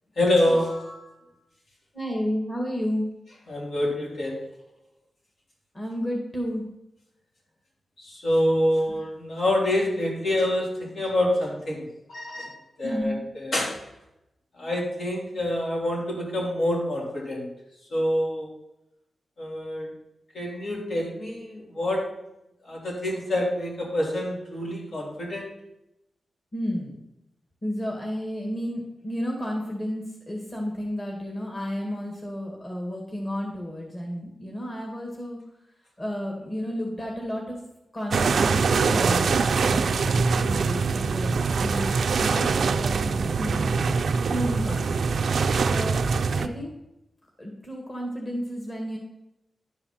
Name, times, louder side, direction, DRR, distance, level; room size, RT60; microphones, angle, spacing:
voice 1, 0.2-1.0 3.5-4.4 8.0-11.8 12.1-13.7 14.6-17.5 17.9-18.5 19.4-19.9 20.3-22.0 22.7-25.5, left 1 dB, 70° left, -4 dB, 3.6 m, -26 dB
voice 2, 1.9-3.1 5.7-6.6 12.8-13.2 26.5-27.0 27.6-35.4 36.0-37.6 37.9-41.3 41.6-41.9 42.2-43.8 44.3-45.2 45.7-46.0 46.4-46.7 47.4-49.0, equal, 30° left, -1 dB, 2.0 m, -31 dB
sound 1, 38.1-46.5, right 5 dB, 70° right, 0.4 m, -23 dB
10.5 x 4.8 x 5.8 m, 0.89 s
wide cardioid pair, 100°, 0 cm